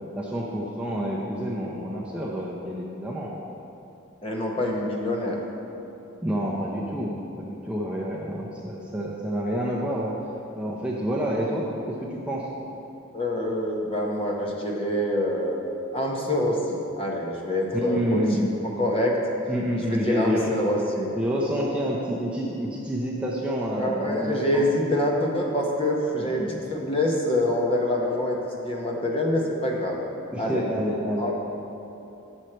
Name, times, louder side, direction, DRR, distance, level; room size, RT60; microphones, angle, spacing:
voice 1, 0.2-3.3 6.2-10.1 10.5-12.5 17.7-18.5 19.5-20.6 21.2-24.6 26.2-26.6 30.3-31.3, equal, 5° right, -4 dB, 0.5 m, -28 dB
voice 2, 4.2-5.4 13.1-18.2 18.8-19.2 19.8-21.1 23.8-28.4 28.6-30.0 30.4-30.6 31.2-31.3, left 1 dB, 25° left, -1 dB, 0.8 m, -26 dB
7.9 x 6.2 x 4.3 m, 2.9 s
head